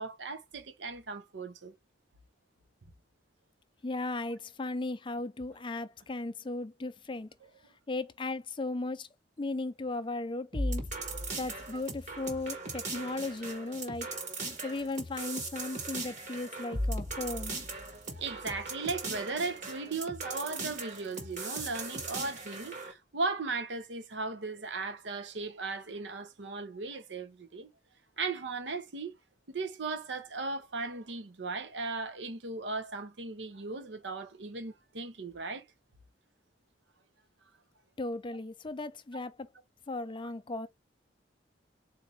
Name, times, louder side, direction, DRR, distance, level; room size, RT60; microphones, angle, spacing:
voice 1, 0.0-1.7 11.7-11.8 18.1-27.7 28.2-29.1 29.5-35.6, right 3 dB, 75° right, 0.8 m, -37 dB
voice 2, 3.8-7.3 7.9-9.1 9.4-10.9 11.3-14.1 14.6-17.6 38.0-39.5 39.9-40.7, left 2 dB, 25° left, 0.5 m, -36 dB
sound 1, 10.5-22.9, right 2 dB, 45° right, 1.5 m, -38 dB
4.1 x 2.7 x 3.4 m
head